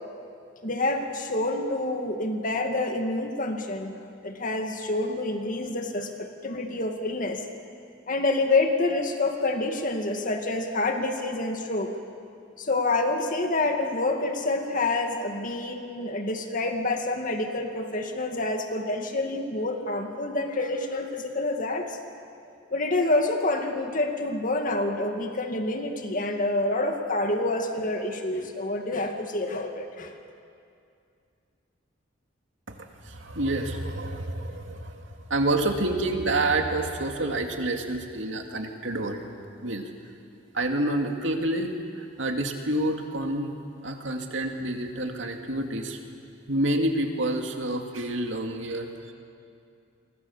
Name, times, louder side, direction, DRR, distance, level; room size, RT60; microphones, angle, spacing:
voice 1, 0.6-4.0 4.2-7.4 8.1-11.9 12.6-22.0 22.7-30.2, left 2 dB, 45° left, 4 dB, 2.2 m, -27 dB
voice 2, 33.0-39.2 39.6-39.9 40.5-43.6 43.8-46.0 46.5-49.1, right 1 dB, 70° right, 3 dB, 2.5 m, -28 dB
29.0 x 23.5 x 7.3 m, 2.4 s
head